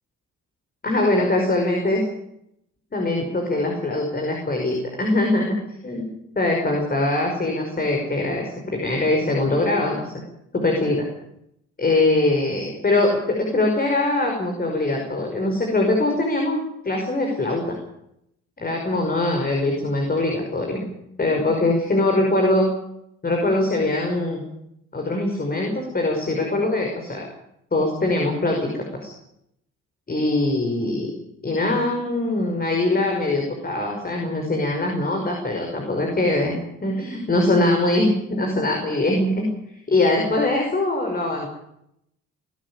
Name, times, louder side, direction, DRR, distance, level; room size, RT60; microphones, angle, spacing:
voice 1, 0.8-2.0 2.9-5.6 5.8-6.1 6.4-10.1 10.5-11.1 11.8-16.6 16.8-17.7 18.6-20.9 21.2-22.7 23.2-24.4 24.9-27.3 27.7-29.1 30.1-31.2 31.4-39.5 39.9-41.5, left 2 dB, 30° left, 2 dB, 5.6 m, -22 dB
22.5 x 12.5 x 9.9 m, 0.78 s
cardioid pair, 90°, 30 cm